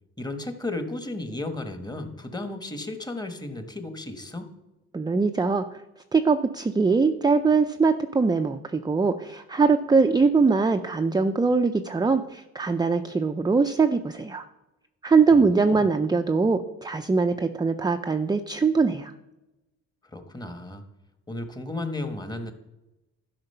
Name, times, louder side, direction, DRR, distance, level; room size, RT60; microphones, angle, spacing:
voice 1, 0.2-4.5 15.3-15.8 20.0-20.8 21.3-22.5, left 2 dB, 15° left, 7 dB, 1.2 m, -34 dB
voice 2, 4.9-5.8 6.1-14.4 15.0-19.1, right 4 dB, 15° right, 7 dB, 0.4 m, -22 dB
12.0 x 5.0 x 5.5 m, 0.98 s
cardioid pair, 90°, 30 cm